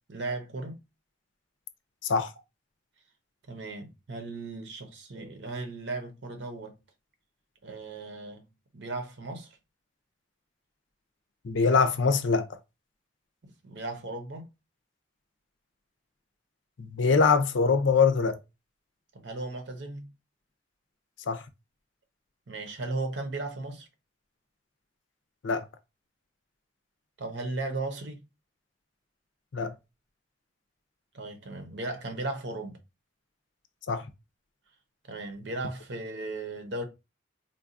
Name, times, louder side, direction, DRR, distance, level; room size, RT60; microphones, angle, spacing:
voice 1, 0.1-0.8 3.5-6.8 7.6-8.5 8.7-9.6 13.6-14.5 19.1-20.1 22.5-23.9 27.2-28.2 31.1-32.8 35.1-36.9, right 2 dB, 70° right, 0.8 m, -36 dB
voice 2, 11.4-12.5 16.8-18.4 21.3-21.4 25.4-25.6 29.5-29.7 33.9-34.0, left 5 dB, 90° left, 0.5 m, -23 dB
3.9 x 2.3 x 2.5 m
head